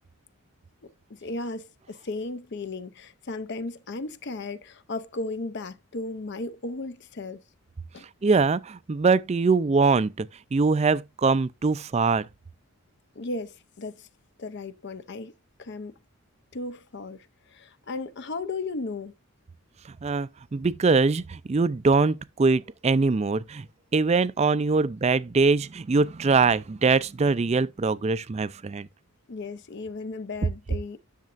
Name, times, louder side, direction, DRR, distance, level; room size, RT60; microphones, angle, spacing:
voice 1, 0.8-7.4 7.9-8.1 13.2-14.1 14.4-15.3 15.6-15.9 16.5-19.1 29.3-31.0, left 3 dB, 50° left, 0.6 m, -35 dB
voice 2, 8.2-12.3 20.0-23.7 23.9-28.9, right 4 dB, 30° right, 0.3 m, -23 dB
10.5 x 6.6 x 2.5 m
head